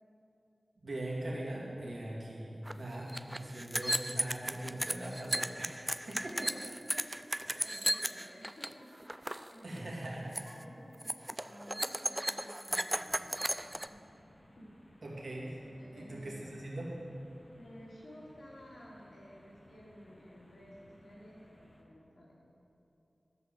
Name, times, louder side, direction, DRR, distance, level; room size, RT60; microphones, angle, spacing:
voice 1, 0.8-6.5 7.5-7.6 9.6-10.3 15.0-17.0, right 1 dB, 70° right, -5 dB, 2.6 m, -41 dB
sound 1, 2.7-2.8 3.0-8.7 9.0-9.5 9.8-10.0 10.3-10.6 11.0-13.9, right 1 dB, 15° right, 0.3 m, -35 dB
voice 2, 6.9-14.0 14.4-14.8 15.8-16.6 17.6-22.4, equal, 75° left, -5 dB, 2.9 m, -54 dB
sound 2, 12.9-21.8, left 1 dB, 30° left, 1.3 m, -61 dB
12.5 x 5.5 x 7.9 m, 2.9 s
wide cardioid pair, 80°, 0 cm